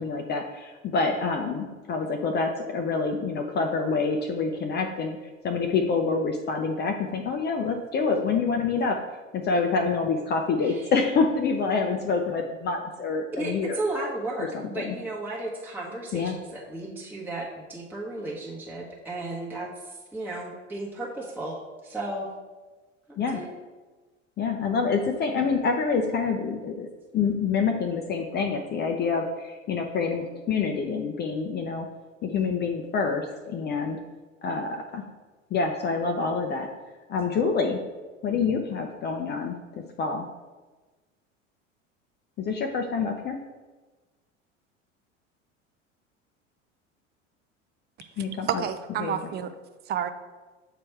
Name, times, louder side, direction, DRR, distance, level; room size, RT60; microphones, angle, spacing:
voice 1, 0.0-5.2 5.4-9.0 9.3-13.8 14.5-15.0 16.1-16.4 23.2-23.4 24.4-26.9 27.1-31.9 32.2-34.0 34.4-35.0 35.5-36.7 37.1-37.8 38.2-39.6 40.0-40.2 42.4-43.4 48.2-48.6 49.0-49.2, left 4 dB, 25° left, 4 dB, 0.5 m, -27 dB
voice 2, 13.4-22.3 23.1-23.5, right 2 dB, 5° right, -4 dB, 1.1 m, -34 dB
voice 3, 48.2-49.5 49.9-50.1, right 9 dB, 30° right, 10 dB, 0.5 m, -30 dB
7.6 x 3.1 x 4.5 m, 1.3 s
figure-of-eight pair, 75°, 38 cm